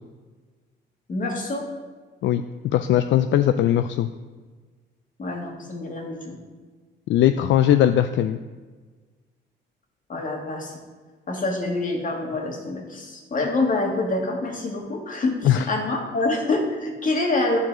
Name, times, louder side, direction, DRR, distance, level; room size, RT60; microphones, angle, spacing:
voice 1, 1.1-1.7 5.2-6.4 10.1-10.8 11.3-17.6, left 2 dB, 40° left, 1 dB, 2.1 m, -26 dB
voice 2, 2.7-4.1 7.1-8.4 15.4-15.7, left 11 dB, 70° left, 10 dB, 0.4 m, -19 dB
11.0 x 4.6 x 6.1 m, 1.4 s
cardioid pair, 90°, 20 cm